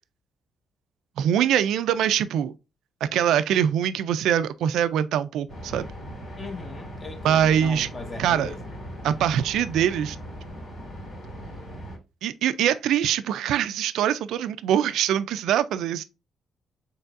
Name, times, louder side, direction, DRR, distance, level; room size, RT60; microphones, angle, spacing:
voice 1, 1.2-2.5 3.0-5.9 7.2-7.9 8.2-8.5 9.0-10.2 12.2-16.0, right 9 dB, 80° right, 0.3 m, -23 dB
sound 1, 5.5-12.0, equal, 50° left, 2.3 m, -39 dB
voice 2, 6.4-8.7, left 3 dB, 35° left, 1.0 m, -39 dB
4.5 x 3.3 x 2.4 m
cardioid pair, 90°, 0 cm